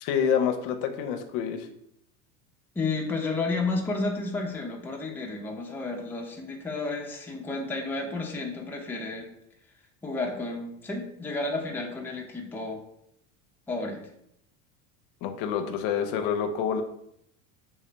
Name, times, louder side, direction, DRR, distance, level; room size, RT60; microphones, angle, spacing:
voice 1, 0.0-1.7 15.2-16.8, left 7 dB, 65° left, 6 dB, 0.6 m, -27 dB
voice 2, 2.8-9.3 10.0-12.8 13.7-14.1, left 3 dB, 5° left, 0 dB, 0.5 m, -31 dB
3.4 x 2.7 x 3.3 m, 0.75 s
supercardioid pair, 100°, 38 cm